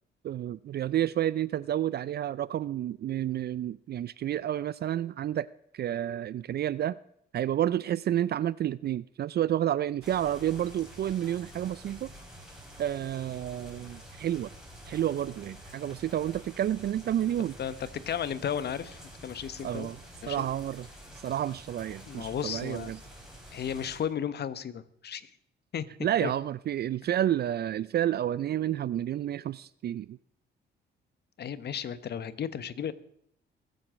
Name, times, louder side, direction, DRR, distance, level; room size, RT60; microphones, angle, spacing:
voice 1, 0.2-5.5 5.7-7.0 7.3-12.1 12.8-14.5 14.9-17.6 19.6-20.0 20.3-20.9 21.2-23.0 26.0-30.2, right 11 dB, 55° right, 0.5 m, -30 dB
sound 1, 10.0-24.0, equal, ahead, 5.1 m, -48 dB
voice 2, 17.6-19.9 20.2-20.4 22.1-22.9 23.5-25.2 25.7-25.8 26.2-26.3 31.4-32.9, left 8 dB, 55° left, 1.1 m, -34 dB
22.5 x 7.8 x 6.3 m
cardioid pair, 90°, 20 cm